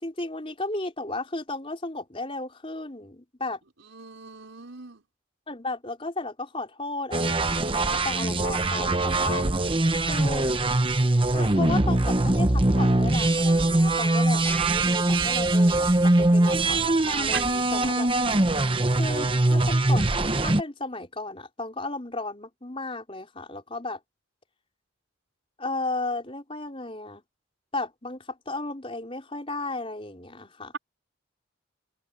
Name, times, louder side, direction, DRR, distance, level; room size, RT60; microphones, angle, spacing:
voice 1, 0.0-3.6 5.5-9.5 10.1-10.5 11.3-18.1 19.0-24.0 25.6-27.2 27.7-30.7, left 2 dB, 30° left, 4.1 m, -34 dB
voice 2, 3.8-5.0 17.3-17.4, right 7 dB, 85° right, 5.3 m, -37 dB
sound 1, 7.1-20.6, right 2 dB, 25° right, 1.0 m, -22 dB
head